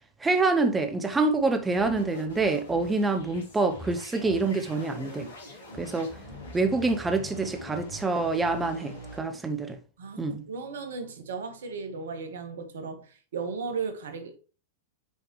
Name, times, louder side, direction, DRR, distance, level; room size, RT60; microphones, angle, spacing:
voice 1, 0.2-5.3 5.8-6.1 6.5-9.8 10.2-10.4, right 3 dB, 15° right, 0.8 m, -26 dB
sound 1, 1.7-9.2, left 1 dB, 70° left, 3.1 m, -43 dB
voice 2, 6.2-6.6 10.0-14.4, right 5 dB, 70° right, 1.4 m, -36 dB
7.0 x 5.0 x 3.1 m
hypercardioid pair, 100°, 0 cm